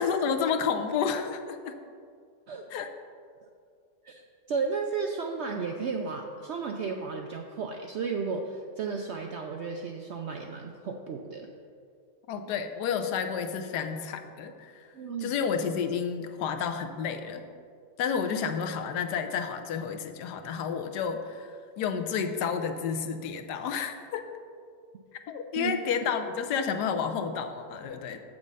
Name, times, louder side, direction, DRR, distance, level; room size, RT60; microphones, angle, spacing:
voice 1, 0.0-1.8 2.7-2.9 12.3-14.7 15.2-17.4 18.0-24.3 25.3-28.2, left 6 dB, 85° left, 7 dB, 1.3 m, -30 dB
voice 2, 4.5-11.5 14.9-15.3 25.6-25.7, right 5 dB, 75° right, 3 dB, 0.6 m, -33 dB
7.3 x 6.3 x 5.3 m, 2.2 s
omnidirectional pair, 1.7 m